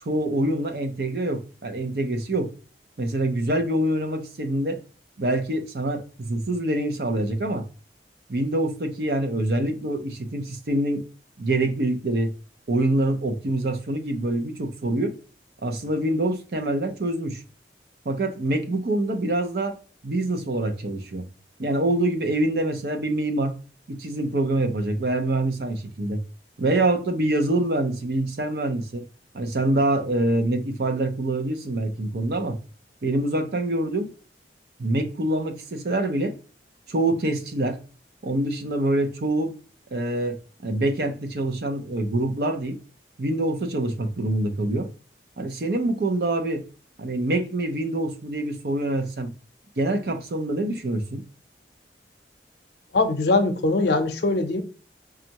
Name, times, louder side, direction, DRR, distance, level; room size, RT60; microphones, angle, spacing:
voice 1, 0.0-2.5 3.0-4.8 5.2-7.7 8.3-11.0 11.4-12.3 12.7-15.2 15.6-17.4 18.0-19.8 20.0-21.2 21.6-23.6 23.9-26.2 26.6-29.0 29.3-32.6 33.0-34.1 34.8-36.4 36.9-37.8 38.2-39.6 39.9-42.8 43.2-44.9 45.4-46.6 47.0-49.3 49.8-51.2, right 1 dB, 60° right, 0.6 m, -25 dB
voice 2, 52.9-54.6, left 2 dB, 70° left, 0.6 m, -21 dB
5.2 x 2.4 x 2.8 m
head